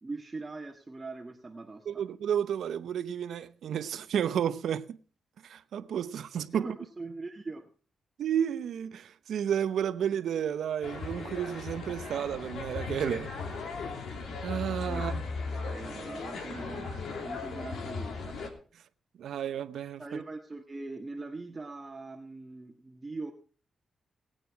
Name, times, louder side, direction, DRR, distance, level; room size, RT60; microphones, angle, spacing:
voice 1, 0.0-2.0 6.5-7.7 14.9-15.0 15.5-18.4 20.0-23.3, right 3 dB, 30° right, 1.5 m, -41 dB
voice 2, 1.9-5.0 5.4-6.7 8.2-13.3 14.4-15.2 19.2-20.2, right 9 dB, 80° right, 0.8 m, -32 dB
sound 1, 10.8-18.5, left 4 dB, 80° left, 2.9 m, -37 dB
19.0 x 9.1 x 4.6 m
cardioid pair, 85°, 0 cm